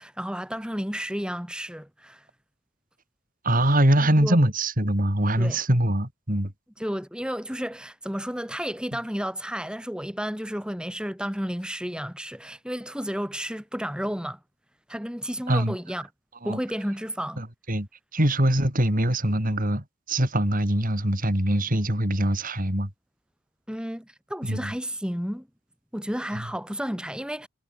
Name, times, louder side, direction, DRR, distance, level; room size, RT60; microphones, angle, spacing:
voice 1, 0.0-2.3 4.0-4.4 5.4-5.6 6.8-14.4 14.9-16.1 16.4-17.4 23.7-25.5 25.9-27.5, equal, 5° right, 7.5 m, -32 dB
voice 2, 3.4-6.5 15.5-15.8 16.4-16.6 17.4-17.9 18.1-22.9 24.4-24.7, right 1 dB, 40° right, 5.1 m, -23 dB
head